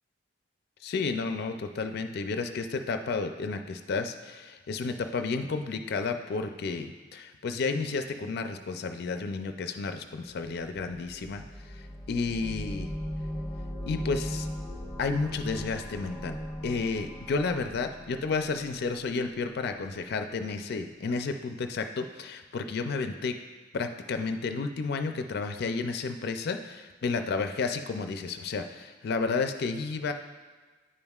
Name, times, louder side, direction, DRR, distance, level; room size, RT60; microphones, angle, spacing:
voice 1, 0.8-11.4 11.8-12.9 13.9-14.5 15.0-16.4 16.6-23.3 23.7-30.1, left 4 dB, 55° left, 7 dB, 0.4 m, -31 dB
sound 1, 10.4-19.3, equal, ahead, 1.2 m, -38 dB
9.8 x 5.4 x 2.3 m, 1.3 s
head